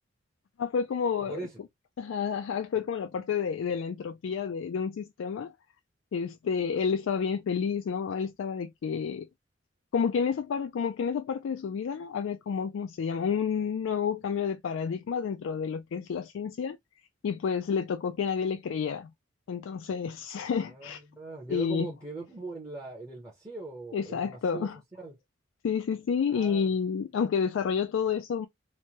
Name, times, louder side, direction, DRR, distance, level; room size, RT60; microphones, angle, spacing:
voice 1, 0.6-1.4 2.0-5.5 6.1-9.3 9.9-16.8 17.2-19.1 19.5-21.0 21.5-21.9 23.9-24.8 25.6-28.5, left 6 dB, 75° left, 0.3 m, -30 dB
voice 2, 1.3-1.6 20.4-24.7 25.0-25.1 26.3-26.7, right 3 dB, 15° right, 0.8 m, -40 dB
3.1 x 2.2 x 2.7 m
head